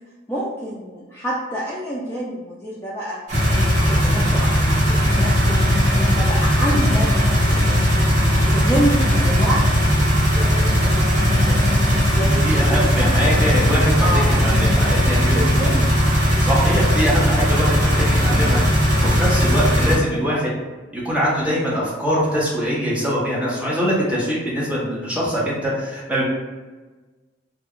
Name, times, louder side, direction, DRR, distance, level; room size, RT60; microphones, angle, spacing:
voice 1, 0.3-3.2 3.6-5.6 5.9-7.1 7.5-7.9 8.5-10.1 10.3-13.4 14.0-16.1, right 1 dB, 10° left, -6 dB, 0.3 m, -28 dB
sound 1, 3.3-19.9, equal, 40° right, 0.9 m, -18 dB
voice 2, 12.1-15.5 16.4-20.5 20.9-26.2, equal, 5° right, -6 dB, 0.7 m, -23 dB
2.3 x 2.1 x 3.5 m, 1.3 s
head